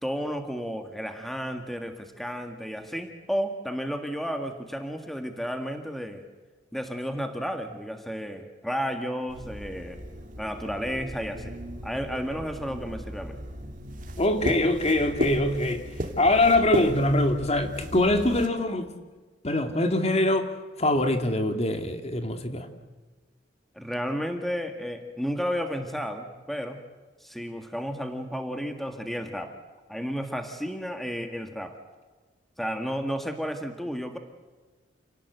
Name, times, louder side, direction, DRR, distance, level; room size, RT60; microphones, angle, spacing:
voice 1, 0.0-6.2 6.7-10.0 10.4-11.6 11.8-13.4 23.7-26.8 27.2-29.5 29.9-31.7 32.6-34.2, equal, ahead, 1.8 m, -32 dB
sound 1, 9.3-18.5, right 1 dB, 45° right, 2.5 m, -35 dB
voice 2, 14.2-18.9 19.4-22.7, left 1 dB, 35° left, 2.1 m, -24 dB
28.5 x 18.5 x 8.0 m
head